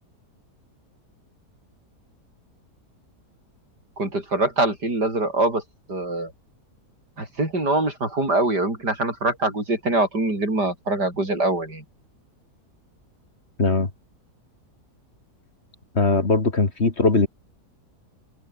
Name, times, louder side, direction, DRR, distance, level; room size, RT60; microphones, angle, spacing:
voice 1, 4.0-5.6 5.9-6.3 7.2-11.8, right 2 dB, 85° right, 8.0 m, -23 dB
voice 2, 13.6-13.9 15.9-17.3, left 3 dB, 40° left, 2.7 m, -20 dB
omnidirectional pair, 1.7 m